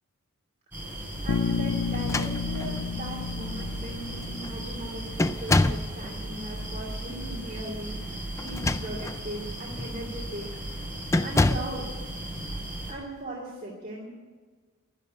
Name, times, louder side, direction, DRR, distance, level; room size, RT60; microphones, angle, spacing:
sound 1, 0.7-12.9, right 1 dB, 10° right, 4.7 m, -36 dB
voice 1, 1.2-10.9 11.2-11.9 12.9-14.1, right 1 dB, 35° right, -3 dB, 2.6 m, -39 dB
Bass guitar, 1.3-5.3, left 6 dB, 85° left, 0.4 m, -32 dB
sound 2, 1.9-2.8 3.7-3.8 4.2-4.5 5.2-5.9 8.4-9.2 9.8-10.0 11.1-11.8, left 2 dB, 15° left, 0.3 m, -26 dB
12.0 x 11.0 x 9.3 m, 1.4 s
head